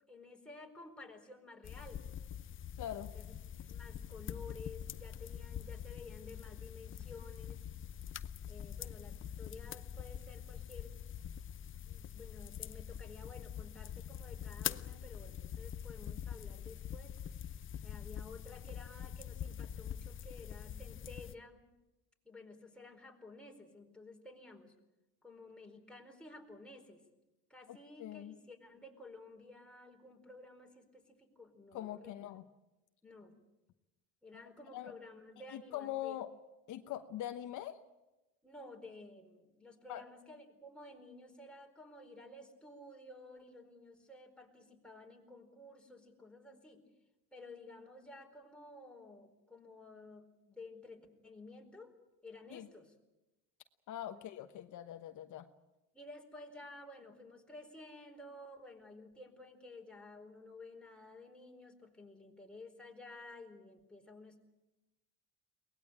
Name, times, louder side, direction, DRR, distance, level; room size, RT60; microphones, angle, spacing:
voice 1, 0.1-2.1 3.1-7.6 8.5-11.0 11.8-17.2 17.8-21.6 22.2-24.7 25.2-27.0 27.5-32.1 33.0-33.3 34.2-36.2 38.4-46.9 47.3-52.0 52.2-52.9 54.1-54.2 55.9-64.4, left 2 dB, 5° left, 1 dB, 4.4 m, -53 dB
sound 1, 1.6-21.3, left 9 dB, 35° left, 0.8 m, -44 dB
voice 2, 2.8-3.1 27.7-28.3 31.7-32.5 34.7-34.9 35.5-36.3 36.7-37.8 39.9-40.0 52.5-52.7 53.9-55.5, left 12 dB, 60° left, 7 dB, 1.2 m, -43 dB
23.0 x 19.5 x 8.7 m, 1.0 s
supercardioid pair, 105°, 35 cm